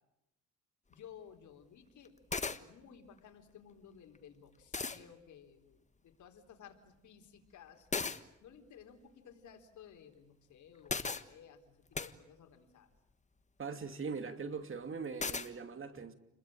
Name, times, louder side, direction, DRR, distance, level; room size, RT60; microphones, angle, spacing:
voice 1, 0.9-2.2 2.6-7.9 8.4-12.9, left 8 dB, 75° left, 4.0 m, -56 dB
sound 1, 0.9-1.0 2.0-2.1 2.3-2.6 4.1-4.2 4.7-5.0 7.9-8.2 10.9-11.2 11.9-12.1 15.2-15.5, left 4 dB, 25° left, 1.5 m, -36 dB
voice 2, 13.6-16.1, right 5 dB, 45° right, 2.8 m, -41 dB
30.0 x 22.0 x 9.0 m
cardioid pair, 90°, 30 cm